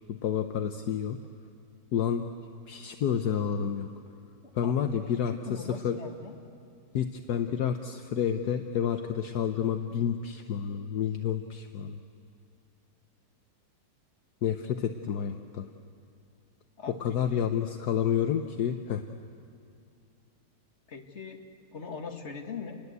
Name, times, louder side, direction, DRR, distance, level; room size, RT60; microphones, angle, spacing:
voice 1, 0.1-1.2 1.9-2.2 2.7-3.9 4.5-6.0 6.9-12.0 14.4-15.7 17.0-19.0, left 8 dB, 70° left, 7 dB, 1.4 m, -29 dB
voice 2, 4.4-5.0 5.5-6.3 16.8-17.4 20.9-21.4 21.7-22.8, left 5 dB, 40° left, 3 dB, 2.1 m, -41 dB
29.5 x 20.5 x 8.2 m, 2.5 s
omnidirectional pair, 1.9 m